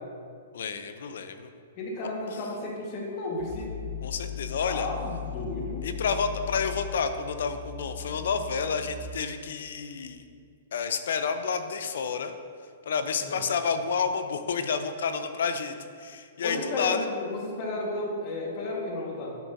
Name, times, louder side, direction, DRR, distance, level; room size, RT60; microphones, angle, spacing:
voice 1, 0.5-1.5 4.0-4.9 5.8-10.2 10.7-12.3 12.9-17.1, left 5 dB, 70° left, 9 dB, 0.5 m, -30 dB
voice 2, 1.8-3.7 4.6-5.9 13.2-13.5 16.4-19.4, left 2 dB, 40° left, -2 dB, 1.5 m, -33 dB
sound 1, 3.4-9.4, left 8 dB, 15° left, 1.5 m, -38 dB
9.4 x 6.1 x 2.7 m, 2.3 s
hypercardioid pair, 135°, 0 cm